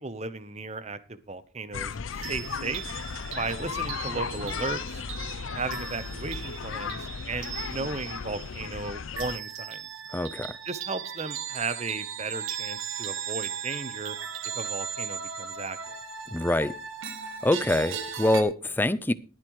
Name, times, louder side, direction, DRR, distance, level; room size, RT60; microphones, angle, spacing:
voice 1, 0.0-2.8 3.4-5.0 5.5-9.8 10.6-14.2 14.5-15.9, right 3 dB, 35° right, 1.0 m, -35 dB
sound 1, 1.7-9.4, left 6 dB, 75° left, 0.6 m, -35 dB
sound 2, 2.2-18.4, right 7 dB, 75° right, 1.6 m, -38 dB
voice 2, 10.1-10.5 16.3-16.7 17.4-19.1, left 1 dB, 10° left, 0.5 m, -25 dB
22.0 x 7.5 x 3.2 m
head